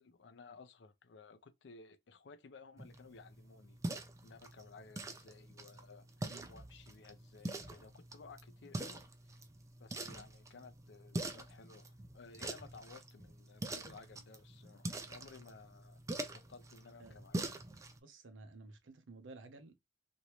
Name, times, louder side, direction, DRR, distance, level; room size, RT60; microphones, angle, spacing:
voice 1, 0.0-9.4 9.8-16.0 16.3-17.6, left 4 dB, 65° left, 0.5 m, -57 dB
sound 1, 2.8-18.0, right 2 dB, 15° right, 0.4 m, -45 dB
voice 2, 18.0-19.8, right 3 dB, 90° right, 0.6 m, -54 dB
3.0 x 2.6 x 2.9 m
head